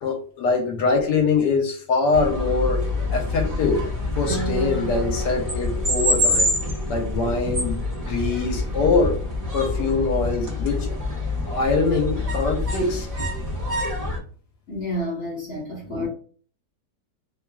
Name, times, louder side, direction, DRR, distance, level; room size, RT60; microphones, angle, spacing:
voice 1, 0.0-3.9 4.2-6.5 6.9-9.2 9.5-10.9 11.5-13.1, left 4 dB, 80° left, 1.3 m, -23 dB
sound 1, 2.1-14.2, left 1 dB, 35° right, 0.5 m, -26 dB
Acoustic guitar, 4.3-8.0, left 1 dB, 70° right, 1.1 m, -34 dB
voice 2, 14.7-16.1, left 1 dB, 50° left, 0.9 m, -29 dB
3.0 x 2.3 x 2.2 m
omnidirectional pair, 1.8 m